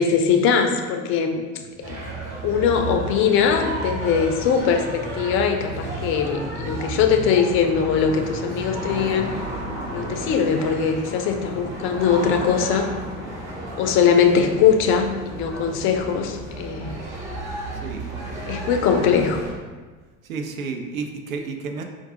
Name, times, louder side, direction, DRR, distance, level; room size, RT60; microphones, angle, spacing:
voice 1, 0.0-1.4 1.9-2.0 2.4-9.3 9.9-12.9 13.8-17.0 18.5-19.4, left 7 dB, 30° left, 5 dB, 0.4 m, -21 dB
voice 2, 1.6-1.9 6.4-7.0 17.7-18.1 20.2-21.8, right 4 dB, 75° right, 4 dB, 0.6 m, -33 dB
sound 1, 1.8-19.5, right 1 dB, 45° right, 1.4 m, -32 dB
4.5 x 2.5 x 3.7 m, 1.3 s
figure-of-eight pair, 70°, 41 cm